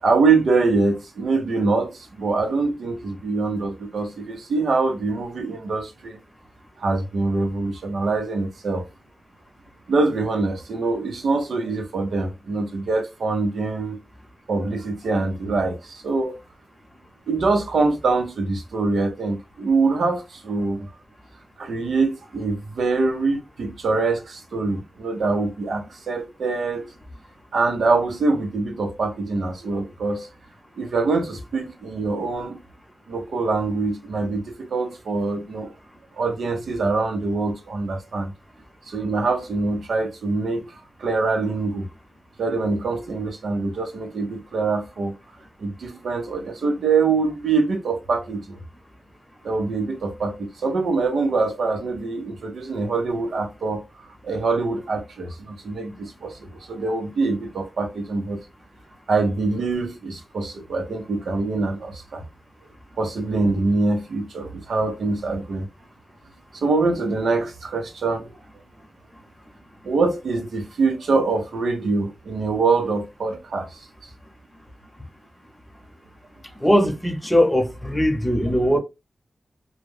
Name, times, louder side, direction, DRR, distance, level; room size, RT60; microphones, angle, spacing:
voice 1, 0.0-6.2 6.8-8.8 9.9-14.0 14.5-16.4 17.3-20.9 21.6-26.9 27.5-30.3 30.8-32.6 33.1-35.7 36.2-38.3 38.9-40.7 41.0-41.9 42.4-45.1 45.6-48.6 49.4-58.4 59.1-62.2 63.0-65.7 66.5-68.4 69.8-73.9, right 3 dB, 90° right, 0.6 m, -24 dB
voice 2, 76.6-78.8, equal, 15° left, 0.7 m, -20 dB
2.2 x 2.0 x 3.1 m
cardioid pair, 70°, 0 cm